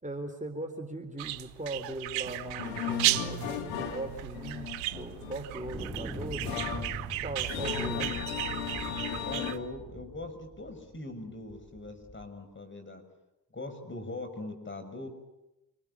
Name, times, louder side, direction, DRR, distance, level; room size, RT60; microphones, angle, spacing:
voice 1, 0.0-6.6 7.2-8.0, right 1 dB, 15° right, 5 dB, 3.8 m, -39 dB
sound 1, 1.2-9.6, right 17 dB, 75° right, 1.1 m, -35 dB
sound 2, 2.3-9.5, left 7 dB, 85° left, 2.5 m, -36 dB
sound 3, 5.7-10.9 11.5-12.3, right 1 dB, ahead, 4.5 m, -42 dB
voice 2, 9.2-13.0 13.5-15.1, left 2 dB, 25° left, 6 dB, 6.5 m, -41 dB
27.5 x 21.0 x 8.6 m, 0.94 s
hypercardioid pair, 55°, 47 cm